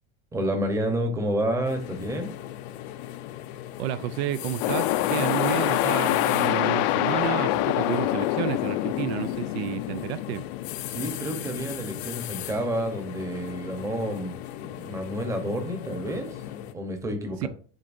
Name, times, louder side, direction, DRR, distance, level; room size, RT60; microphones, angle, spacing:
voice 1, 0.3-2.3 10.9-16.4 16.7-17.5, right 1 dB, 10° right, 0.9 m, -29 dB
sound 1, 1.6-16.7, left 13 dB, 85° left, 0.8 m, -38 dB
voice 2, 3.8-10.5 17.4-17.5, right 12 dB, 80° right, 0.5 m, -31 dB
sound 2, 4.6-12.0, left 14 dB, 45° left, 0.4 m, -26 dB
10.5 x 3.8 x 2.6 m
supercardioid pair, 165°, 31 cm